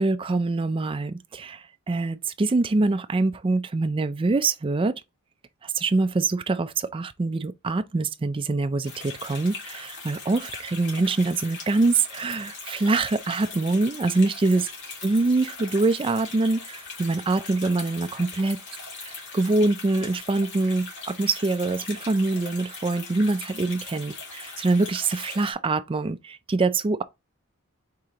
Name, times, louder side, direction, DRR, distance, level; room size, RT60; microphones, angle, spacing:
voice 1, 0.0-4.9 5.6-14.7 15.0-18.6 19.0-27.0, right 3 dB, 25° right, 0.4 m, -24 dB
sound 1, 8.8-25.5, left 4 dB, 55° left, 1.9 m, -40 dB
4.9 x 3.7 x 2.9 m
head